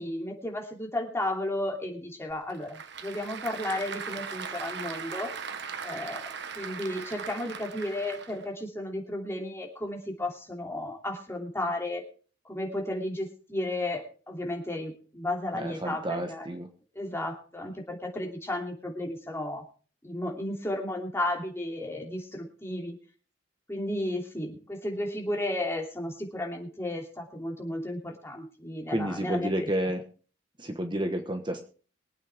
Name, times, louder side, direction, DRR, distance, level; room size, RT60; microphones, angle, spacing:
voice 1, 0.0-5.3 5.8-6.2 6.5-12.0 12.4-16.5 16.9-19.6 20.0-22.9 23.7-29.5, left 1 dB, 15° left, 1 dB, 3.0 m, -33 dB
Applause / Crowd, 2.3-8.5, right 6 dB, 65° right, 1.1 m, -39 dB
voice 2, 15.5-16.7 28.9-30.0 30.6-31.6, right 1 dB, 25° right, 5 dB, 1.3 m, -30 dB
23.5 x 8.7 x 3.6 m, 0.40 s
head